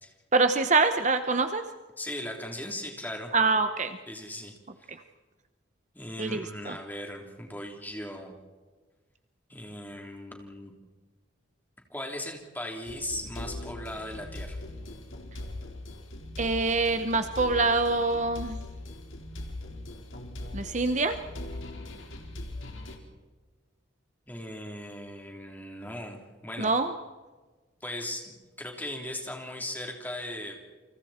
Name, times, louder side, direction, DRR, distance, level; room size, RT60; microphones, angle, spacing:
voice 1, 0.3-1.6 3.3-4.0 6.2-6.8 16.4-18.6 20.5-21.2 26.6-26.9, right 3 dB, 35° right, 8 dB, 0.9 m, -25 dB
voice 2, 2.0-3.3 4.1-4.5 4.9-5.0 5.9-8.3 9.5-10.7 11.9-14.6 24.3-26.2 26.4-26.7 27.8-30.6, left 1 dB, 10° left, 1 dB, 3.6 m, -38 dB
sound 1, 12.9-23.0, left 1 dB, 80° left, 4.4 m, -40 dB
29.0 x 25.5 x 4.4 m, 1.3 s
head